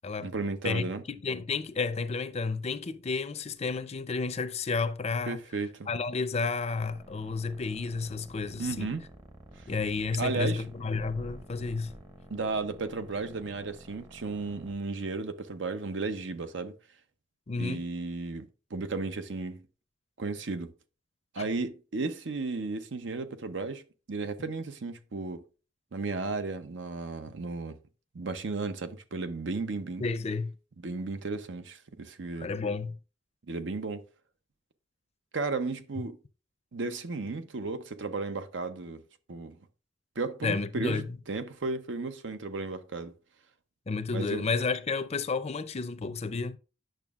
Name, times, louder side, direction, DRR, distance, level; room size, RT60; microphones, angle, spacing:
voice 1, 0.2-1.0 5.3-5.9 8.6-9.0 10.2-10.6 12.3-16.7 17.6-19.6 20.2-20.7 21.3-23.8 24.1-25.4 25.9-27.8 28.1-30.0 30.8-32.5 33.5-34.0 35.3-36.2 36.7-39.0 39.3-39.6 40.2-43.1 44.1-44.5, right 3 dB, 80° right, 0.7 m, -34 dB
voice 2, 1.2-5.4 5.9-8.9 9.7-11.9 17.5-17.8 21.4-21.5 30.0-30.5 32.4-33.0 40.4-41.0 43.9-46.6, left 4 dB, 35° left, 0.5 m, -31 dB
sound 1, 6.8-14.7, right 1 dB, 25° right, 0.8 m, -50 dB
8.9 x 6.2 x 2.4 m
head